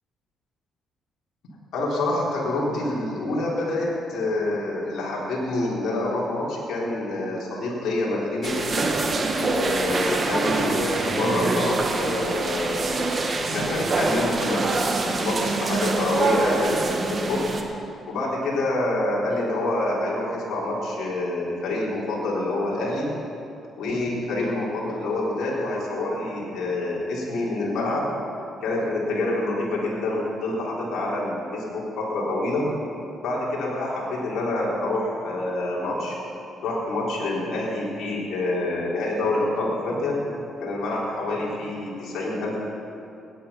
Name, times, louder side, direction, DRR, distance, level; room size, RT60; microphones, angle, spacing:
voice 1, 1.7-9.0 9.6-14.7 15.0-17.5 18.1-23.1 23.8-28.1 28.6-32.7 33.2-36.2 36.6-40.2 40.6-42.6, left 2 dB, 75° left, -5 dB, 3.9 m, -27 dB
sound 1, 8.4-17.6, right 3 dB, 40° right, 1.5 m, -25 dB
16.5 x 10.5 x 5.8 m, 2.7 s
cardioid pair, 90°, 0 cm